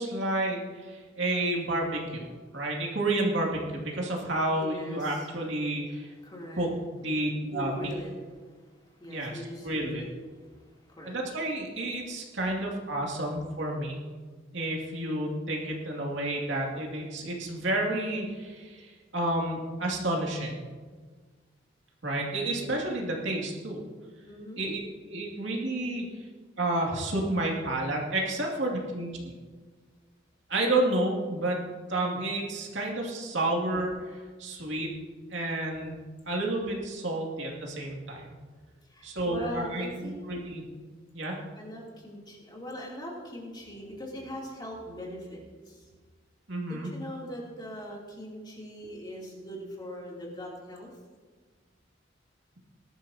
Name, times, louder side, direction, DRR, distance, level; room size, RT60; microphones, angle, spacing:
voice 1, 0.0-2.3 2.5-6.1 6.6-7.9 9.1-10.0 11.0-14.0 14.5-20.6 22.0-23.8 24.6-24.8 25.1-26.1 26.6-29.1 30.5-31.6 31.9-34.9 35.3-36.0 36.3-38.4 39.0-40.6 41.1-41.4 46.5-46.9, right 1 dB, 70° right, -1 dB, 2.5 m, -30 dB
voice 2, 4.6-5.3 6.2-6.7 7.5-8.1 8.4-11.1 24.2-24.6 38.8-40.2 40.6-40.7 41.5-45.9 46.7-50.9, equal, 25° left, -3 dB, 3.0 m, -41 dB
19.5 x 12.5 x 2.9 m, 1.5 s
head